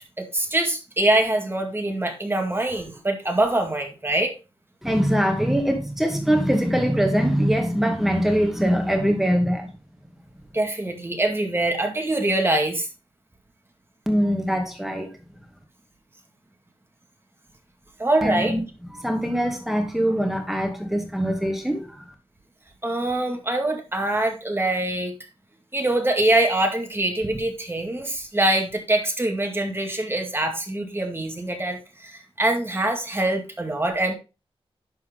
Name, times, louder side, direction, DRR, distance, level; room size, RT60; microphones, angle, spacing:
voice 1, 0.2-4.3 10.5-12.9 18.0-18.5 22.8-25.1 25.7-34.1, right 1 dB, 25° right, 2.2 m, -24 dB
voice 2, 4.8-9.7 14.1-15.2 18.2-18.6 18.9-22.0, equal, 5° right, 2.4 m, -22 dB
11.0 x 4.6 x 3.8 m
wide cardioid pair, 75°, 10 cm